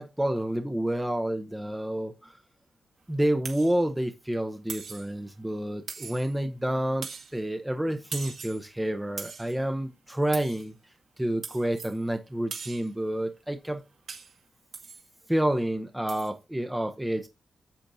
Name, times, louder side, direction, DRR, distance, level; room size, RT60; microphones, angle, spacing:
voice 1, 0.0-2.3 3.1-10.7 11.2-13.8 15.3-17.3, right 1 dB, 5° right, 0.8 m, -29 dB
sound 1, 3.4-3.8 4.7-5.1 5.9-6.4 7.0-7.4 8.1-8.7 9.2-9.6 10.3-10.7 11.4-12.0 12.5-12.9 14.1-14.4 14.7-15.0 16.1-16.3, right 5 dB, 70° right, 2.1 m, -40 dB
10.0 x 7.8 x 2.7 m
wide cardioid pair, 120°, 0 cm